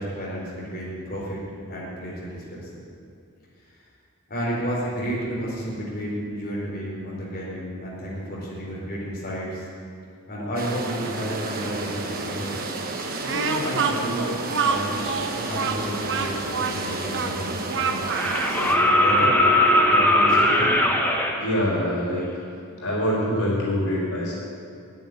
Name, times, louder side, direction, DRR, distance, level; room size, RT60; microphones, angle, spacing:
voice 1, 0.0-1.4 1.7-2.7 4.3-9.6 10.3-12.6 13.2-18.0 18.5-19.4 19.8-20.7, equal, 45° left, -6 dB, 4.3 m, -31 dB
sound 1, 10.6-18.8, right 3 dB, 45° right, 1.3 m, -32 dB
Speech, 13.2-18.6, right 5 dB, 60° right, 0.9 m, -27 dB
sound 2, 17.0-17.1 18.1-21.3 23.1-23.2, left 1 dB, 10° left, 1.3 m, -19 dB
voice 2, 21.3-22.2 22.8-24.3, equal, 75° left, -4 dB, 4.0 m, -24 dB
11.0 x 9.6 x 9.5 m, 2.3 s
head